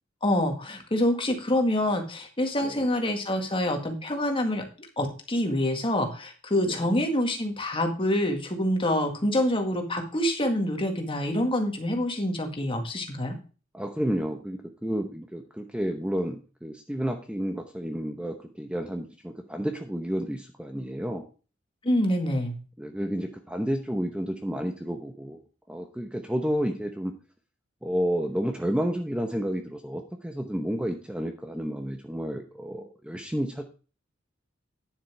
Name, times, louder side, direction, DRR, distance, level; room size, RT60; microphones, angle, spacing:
voice 1, 0.2-4.6 5.0-13.4 21.8-22.6, left 1 dB, 25° left, 4 dB, 1.9 m, -26 dB
voice 2, 13.7-21.2 22.8-25.4 25.7-27.1 27.8-33.6, equal, 5° right, 4 dB, 0.8 m, -31 dB
9.9 x 7.3 x 4.6 m, 0.35 s
head